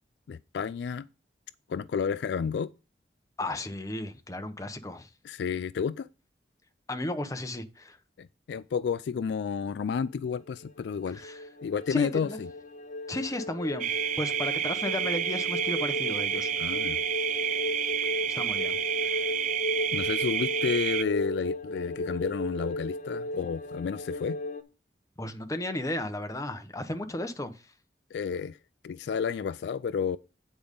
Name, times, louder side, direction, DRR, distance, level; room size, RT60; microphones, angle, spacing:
voice 1, 0.3-1.1 1.7-2.7 5.2-6.1 8.2-11.2 11.6-12.5 16.5-17.0 19.9-24.4 28.1-28.6 28.8-30.2, left 6 dB, 70° left, 0.3 m, -31 dB
voice 2, 3.4-5.1 6.9-8.0 11.1-11.4 11.9-12.4 13.1-13.9 14.2-16.5 18.3-19.2 25.2-27.5, left 1 dB, 20° left, 0.9 m, -34 dB
sound 1, 10.5-24.6, left 1 dB, 45° left, 1.0 m, -35 dB
sound 2, 13.8-21.0, right 10 dB, 45° right, 0.4 m, -30 dB
8.8 x 5.0 x 5.3 m
head